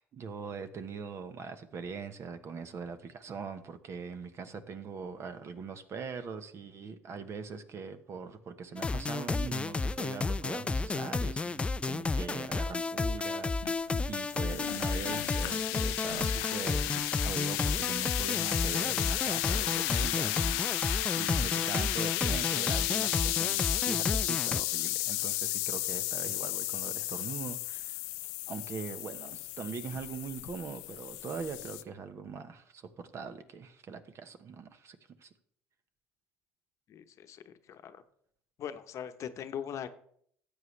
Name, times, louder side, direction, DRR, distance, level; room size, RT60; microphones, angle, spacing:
voice 1, 0.0-28.0 28.5-35.3, right 5 dB, 50° right, 9 dB, 1.2 m, -42 dB
sound 1, 8.8-24.6, left 3 dB, 20° left, 0.4 m, -32 dB
sound 2, 13.6-31.8, left 19 dB, 80° left, 0.5 m, -33 dB
voice 2, 36.9-38.0 38.6-39.9, left 9 dB, 55° left, 9 dB, 0.9 m, -41 dB
13.5 x 8.2 x 3.3 m, 0.65 s
supercardioid pair, 75°, 6 cm